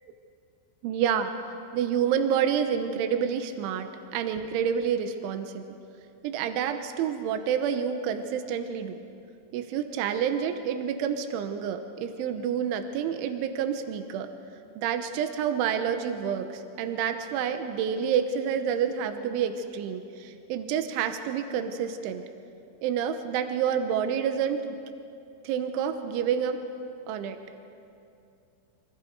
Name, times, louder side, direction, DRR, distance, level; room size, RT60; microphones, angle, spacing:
voice 1, 0.8-1.3 1.7-5.6 6.2-9.0 9.5-14.3 14.8-22.2 22.8-24.8 25.4-26.6 27.1-27.4, right 8 dB, 85° right, 7 dB, 3.4 m, -28 dB
30.0 x 24.5 x 4.7 m, 2.6 s
omnidirectional pair, 5.4 m